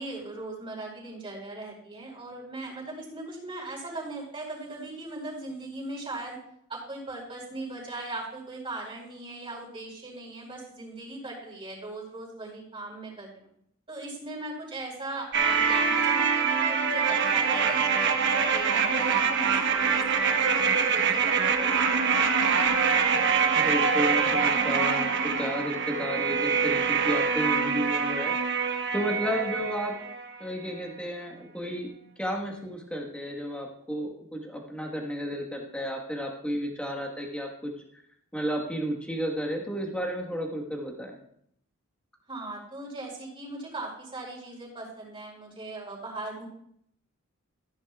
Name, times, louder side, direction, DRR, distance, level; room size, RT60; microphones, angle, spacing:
voice 1, 0.0-6.4 6.7-13.5 13.9-21.7 42.3-46.5, right 2 dB, 25° right, -4 dB, 4.2 m, -39 dB
sound 1, 15.3-30.3 30.6-30.7, right 6 dB, 60° right, 1.0 m, -25 dB
voice 2, 23.5-28.3 28.6-30.0 30.4-31.9 32.2-37.7 38.3-41.1, equal, 5° left, 0 dB, 1.4 m, -32 dB
14.5 x 10.0 x 2.4 m, 0.70 s
head